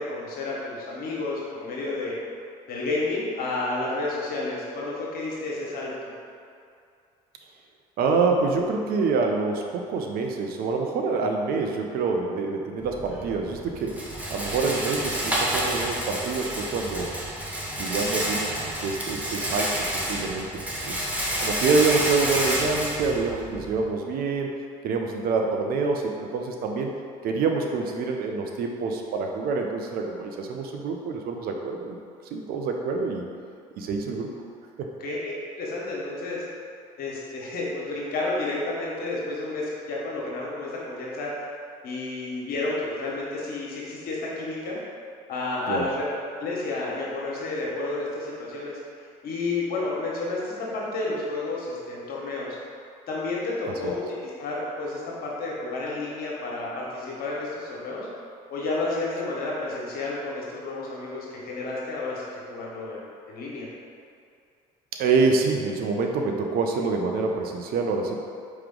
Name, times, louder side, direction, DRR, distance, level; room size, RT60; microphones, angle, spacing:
voice 1, 0.0-2.1 2.7-6.1 35.0-36.4 37.0-41.4 41.8-44.8 45.3-46.0 46.4-48.7 49.2-52.5 53.1-58.1 58.5-63.7, left 2 dB, 60° left, -4 dB, 1.3 m, -31 dB
voice 2, 8.0-17.1 17.8-20.6 20.9-21.0 21.4-24.5 24.8-26.9 27.2-32.0 32.3-33.2 33.8-34.3 34.8-34.9 45.7-45.9 53.6-53.9 65.0-68.2, right 4 dB, 60° right, 2 dB, 0.6 m, -26 dB
Rattle, 12.8-23.8, right 1 dB, 10° right, 1.0 m, -29 dB
4.6 x 3.0 x 3.8 m, 2.4 s
hypercardioid pair, 65°, 17 cm